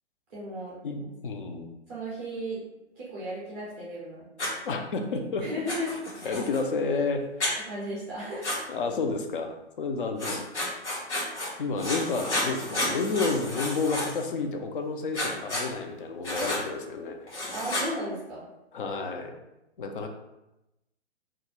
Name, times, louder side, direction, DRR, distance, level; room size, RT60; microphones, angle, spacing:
voice 1, 0.3-0.7 1.9-2.6 2.9-4.3 5.4-5.9 6.2-6.4 7.6-8.6 17.5-18.4, equal, 10° right, -9 dB, 0.4 m, -35 dB
voice 2, 0.8-1.7 4.6-5.4 6.2-7.5 8.7-10.5 11.6-17.2 18.7-19.4 19.8-20.1, left 4 dB, 50° left, 5 dB, 0.4 m, -30 dB
Writing, 4.4-4.5 5.7-6.6 7.4-7.5 8.4-8.6 10.2-11.5 11.8-14.3 15.1-15.7 16.2-16.6 17.3-17.9, left 1 dB, 80° left, 1.0 m, -31 dB
2.3 x 2.1 x 2.9 m, 0.93 s
figure-of-eight pair, 130°, 34 cm